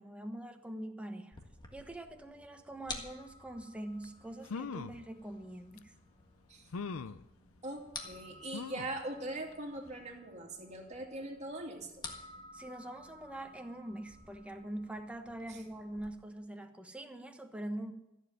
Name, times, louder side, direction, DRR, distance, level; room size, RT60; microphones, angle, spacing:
voice 1, 0.0-1.4 1.7-5.9 12.5-17.9, right 1 dB, 5° right, 5 dB, 1.1 m, -43 dB
sound 1, 1.3-16.1, left 2 dB, 20° left, 1.6 m, -52 dB
sound 2, 4.0-4.1 4.4-5.0 5.8-5.9 6.7-7.2 8.5-9.0 9.5-9.6 9.9-10.0, left 5 dB, 75° left, 0.5 m, -40 dB
voice 2, 7.6-12.0 15.5-15.6, right 1 dB, 35° right, 0 dB, 2.4 m, -41 dB
14.0 x 7.4 x 9.3 m, 0.92 s
head